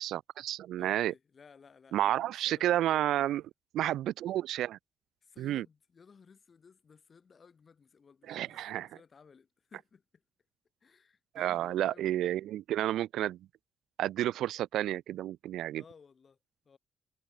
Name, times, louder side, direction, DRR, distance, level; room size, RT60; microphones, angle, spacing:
voice 1, 0.0-1.1 1.9-3.4 3.7-4.8 5.4-5.6 8.3-8.9 11.3-13.4 14.0-15.8, right 13 dB, 85° right, 0.5 m, -31 dB
voice 2, 0.8-3.5 5.2-10.2 10.8-12.2 15.7-16.4 16.6-16.8, left 5 dB, 40° left, 4.3 m, -58 dB
cardioid pair, 95°, 0 cm